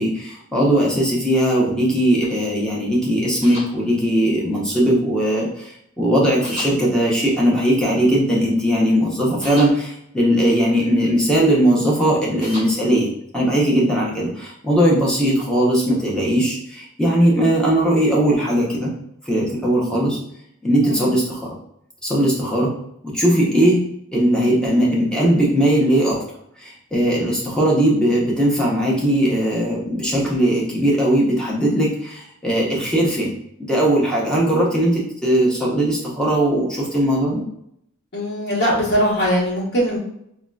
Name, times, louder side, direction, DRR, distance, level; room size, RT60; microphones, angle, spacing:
voice 1, 0.0-18.9 19.3-20.2 20.6-21.6 22.0-22.7 23.0-23.8 24.1-26.2 26.6-33.3 33.7-37.4, right 1 dB, 5° left, -5 dB, 0.7 m, -19 dB
sound 1, 3.4-3.7 6.4-6.7 9.4-9.7 12.4-12.7, left 1 dB, 30° left, 1.4 m, -32 dB
voice 2, 38.1-40.0, equal, 50° left, -6 dB, 1.2 m, -20 dB
3.7 x 2.2 x 2.2 m, 0.75 s
head